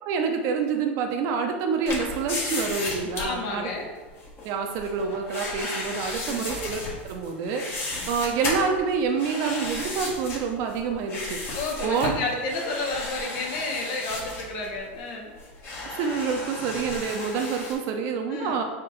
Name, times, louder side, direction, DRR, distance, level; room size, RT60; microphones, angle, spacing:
voice 1, 0.0-3.7 4.4-6.8 7.1-11.4 11.8-12.1 16.0-18.6, right 5 dB, 55° right, 4 dB, 0.7 m, -27 dB
sound 1, 1.9-17.7, left 2 dB, 35° left, 1.4 m, -34 dB
voice 2, 3.2-3.9 6.2-6.5 11.5-15.3 18.3-18.6, left 3 dB, 55° left, 0 dB, 1.1 m, -31 dB
4.4 x 3.1 x 3.9 m, 1.3 s
hypercardioid pair, 105°, 7 cm